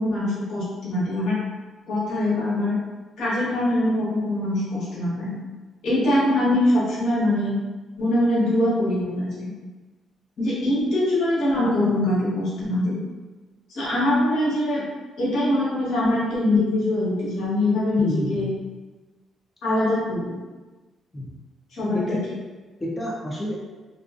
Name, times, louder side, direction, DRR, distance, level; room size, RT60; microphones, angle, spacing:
voice 1, 0.0-1.4 1.9-2.8 3.2-5.3 5.8-7.5 8.0-9.5 10.4-13.0 13.7-14.9 15.2-18.5 19.6-20.4 21.7-22.4, left 1 dB, 75° left, -8 dB, 1.2 m, -23 dB
voice 2, 18.0-18.5 21.1-21.3 21.9-22.2 22.8-23.5, equal, 15° left, -4 dB, 0.5 m, -28 dB
2.4 x 2.4 x 2.4 m, 1.3 s
cardioid pair, 90°, 0 cm